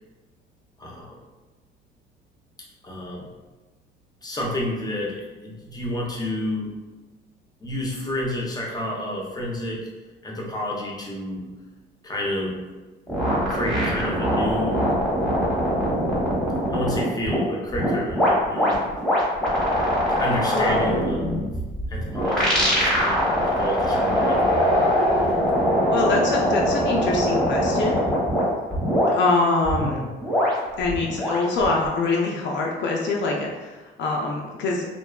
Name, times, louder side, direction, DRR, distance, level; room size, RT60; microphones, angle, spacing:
voice 1, 0.8-1.2 2.8-3.3 4.2-6.7 7.6-9.9 10.2-11.5 12.0-12.6 13.5-14.9 16.7-19.1 20.2-21.3 21.9-24.4, left 1 dB, 20° left, -2 dB, 0.6 m, -30 dB
sound 1, 13.1-17.3 17.7-28.4 28.7-29.1 29.6-31.9, equal, 5° left, 1.1 m, -22 dB
voice 2, 20.5-20.9 25.9-28.0 29.1-30.0 30.8-34.9, left 3 dB, 65° left, -1 dB, 0.4 m, -24 dB
2.6 x 2.2 x 2.3 m, 1.2 s
cardioid pair, 90°, 20 cm